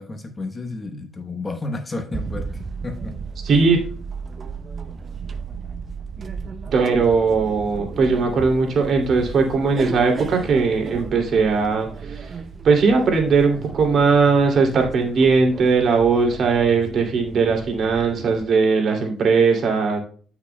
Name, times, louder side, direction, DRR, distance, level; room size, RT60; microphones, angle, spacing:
voice 1, 0.0-2.5 2.8-3.2, left 2 dB, 25° left, 6 dB, 1.2 m, -31 dB
sound 1, 2.1-18.4, right 5 dB, 45° right, 0.7 m, -35 dB
voice 2, 3.4-3.8 6.7-12.4 12.6-20.0, right 4 dB, 60° right, 2 dB, 2.5 m, -19 dB
13.0 x 5.9 x 2.2 m, 0.43 s
cardioid pair, 90°, 0 cm